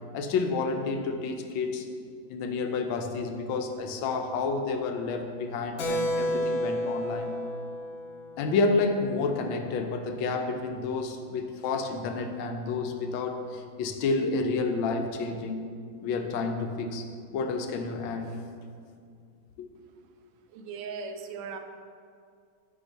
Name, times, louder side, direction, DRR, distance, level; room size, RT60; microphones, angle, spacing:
voice 1, 0.1-1.8 2.3-7.3 8.4-15.6 16.0-17.0 17.3-18.3 19.6-19.7, left 4 dB, 85° left, 5 dB, 1.4 m, -30 dB
Keyboard (musical), 5.8-9.9, equal, 70° left, 0.9 m, -32 dB
voice 2, 20.5-21.6, right 5 dB, 80° right, 6 dB, 1.3 m, -39 dB
8.6 x 3.6 x 3.9 m, 2.3 s
omnidirectional pair, 2.1 m